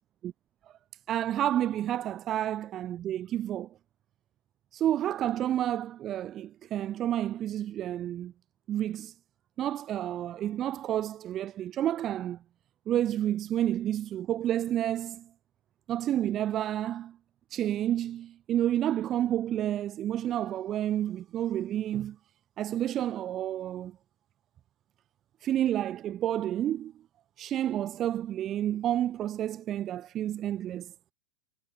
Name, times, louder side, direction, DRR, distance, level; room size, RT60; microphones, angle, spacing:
voice 1, 1.1-3.7 4.7-8.3 8.7-9.2 9.6-12.4 12.9-15.3 15.9-17.2 17.5-22.2 22.6-24.0 25.4-26.9 27.4-30.9, right 11 dB, 30° right, 6.5 m, -30 dB
figure-of-eight pair, 95°, 0 cm